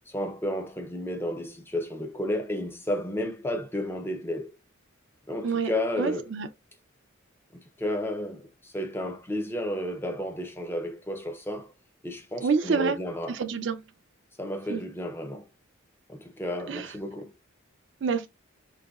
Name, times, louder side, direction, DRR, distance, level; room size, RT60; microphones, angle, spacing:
voice 1, 0.1-4.5 5.3-6.3 7.5-11.7 12.0-13.4 14.4-15.5 16.1-17.3, left 1 dB, 10° left, 0.5 m, -32 dB
voice 2, 6.0-6.5 12.4-13.0 13.3-13.8 14.7-14.8 16.7-16.9 18.0-18.3, right 5 dB, 55° right, 0.4 m, -27 dB
4.0 x 2.7 x 2.2 m
head